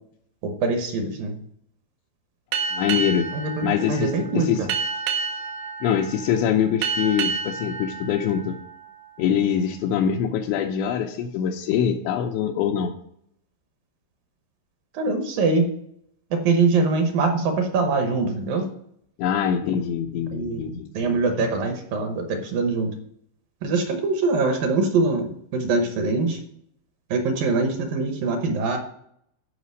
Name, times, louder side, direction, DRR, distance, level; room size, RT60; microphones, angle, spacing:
voice 1, 0.6-1.3 3.3-4.7 14.9-15.7 16.3-18.6 20.3-22.9 23.6-26.4 27.1-28.8, right 3 dB, 70° right, 4 dB, 2.3 m, -23 dB
Boat Water vehicle, 2.5-9.6, right 5 dB, 85° right, 3.3 m, -30 dB
voice 2, 2.7-3.3 3.6-4.7 5.8-8.6 9.2-12.9 19.2-21.5, left 8 dB, 85° left, 0 dB, 3.0 m, -24 dB
11.5 x 5.0 x 6.3 m, 0.71 s
omnidirectional pair, 5.0 m